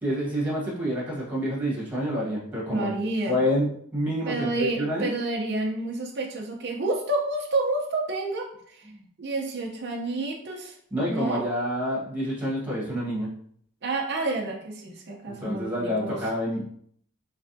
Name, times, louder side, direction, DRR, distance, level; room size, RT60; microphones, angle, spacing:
voice 1, 0.0-2.9 3.3-5.1 8.9-9.0 10.9-13.3 15.3-16.6, equal, 5° right, -6 dB, 1.3 m, -28 dB
voice 2, 2.7-3.4 4.3-8.9 9.2-10.8 11.0-11.4 13.8-16.2, right 2 dB, 50° right, 0 dB, 0.6 m, -29 dB
3.4 x 3.2 x 2.6 m, 0.64 s
head